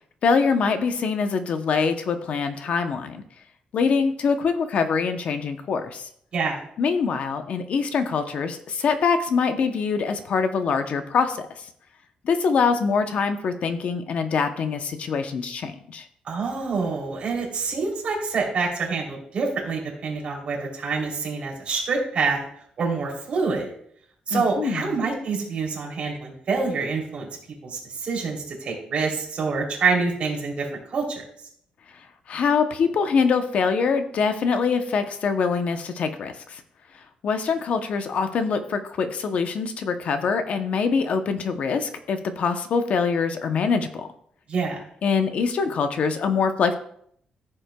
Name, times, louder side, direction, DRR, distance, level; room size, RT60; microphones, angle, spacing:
voice 1, 0.2-3.2 3.7-6.1 6.8-11.5 12.2-16.1 24.3-25.0 32.3-36.6 37.2-44.1 45.0-46.7, left 5 dB, 55° left, 8 dB, 0.7 m, -24 dB
voice 2, 16.2-22.4 22.8-23.7 24.3-27.3 27.6-31.2 44.5-44.8, right 4 dB, 45° right, -2 dB, 3.1 m, -26 dB
14.5 x 7.6 x 2.3 m, 0.66 s
wide cardioid pair, 160°, 3 cm